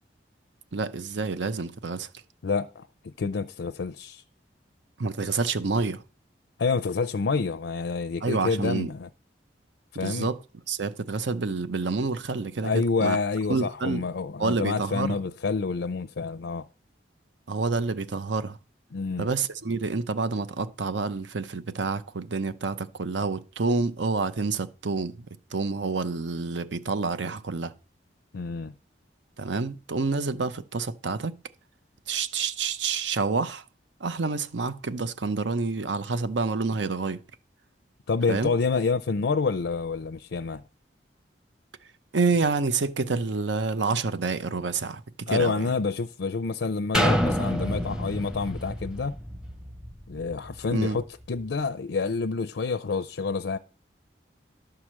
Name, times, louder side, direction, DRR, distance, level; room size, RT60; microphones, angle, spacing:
voice 1, 0.7-2.1 5.0-6.0 8.2-8.9 10.0-10.4 10.7-13.2 13.5-14.1 14.4-15.2 17.5-18.6 19.2-25.1 25.5-27.7 29.4-31.3 32.1-33.6 34.0-37.2 38.3-38.5 42.1-45.0 45.3-45.6 50.7-51.0, right 4 dB, 85° right, 0.7 m, -28 dB
voice 2, 2.4-2.9 3.2-4.2 6.6-9.1 9.9-10.3 12.6-16.6 18.9-19.3 28.3-28.7 38.1-40.6 45.3-49.2 50.1-53.6, left 4 dB, 85° left, 0.5 m, -28 dB
sound 1, 46.9-50.7 51.2-51.3, equal, 5° right, 0.6 m, -28 dB
11.5 x 4.9 x 7.4 m
head